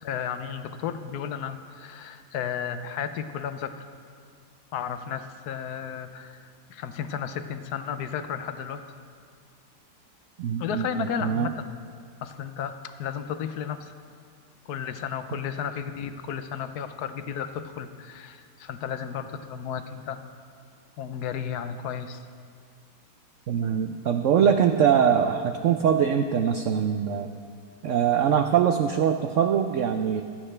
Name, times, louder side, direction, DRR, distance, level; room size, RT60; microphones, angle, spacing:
voice 1, 0.0-3.9 4.7-8.8 10.6-11.7 12.2-13.9 14.7-20.2 21.0-22.2, left 8 dB, 70° left, 10 dB, 1.1 m, -33 dB
voice 2, 10.4-10.9 11.2-11.5 23.5-27.3 27.8-30.2, right 8 dB, 75° right, 7 dB, 0.7 m, -23 dB
25.5 x 8.8 x 3.3 m, 2.2 s
omnidirectional pair, 1.8 m